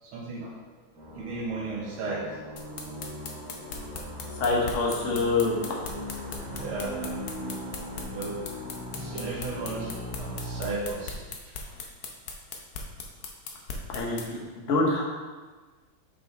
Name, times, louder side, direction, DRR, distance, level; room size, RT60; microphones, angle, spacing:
voice 1, 0.0-0.6 1.1-2.3 6.5-7.1 8.1-8.4 8.9-11.8, right 3 dB, 75° right, -3 dB, 2.0 m, -35 dB
sound 1, 0.9-10.6, equal, 50° right, 2.3 m, -39 dB
sound 2, 2.6-14.3, left 4 dB, 60° left, 1.0 m, -38 dB
voice 2, 4.4-5.6 13.9-15.0, left 3 dB, 45° left, -2 dB, 1.3 m, -26 dB
6.2 x 5.6 x 3.4 m, 1.3 s
omnidirectional pair, 2.4 m